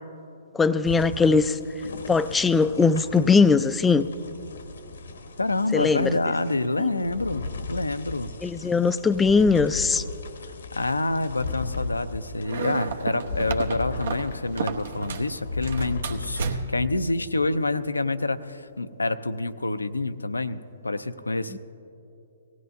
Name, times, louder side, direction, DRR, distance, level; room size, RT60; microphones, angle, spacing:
voice 1, 0.5-1.6 2.1-4.1 5.7-6.1 6.8-6.9 8.4-10.0 21.5-21.6, left 4 dB, 10° left, 14 dB, 0.3 m, -20 dB
sound 1, 0.8-16.7, left 3 dB, 70° left, 0.8 m, -37 dB
voice 2, 5.4-8.3 10.4-21.6, left 2 dB, 90° left, 12 dB, 0.4 m, -27 dB
sound 2, 12.4-15.3 15.6-16.9, right 5 dB, 65° right, 0.9 m, -32 dB
19.0 x 15.5 x 2.6 m, 2.8 s
figure-of-eight pair, 125°, 0 cm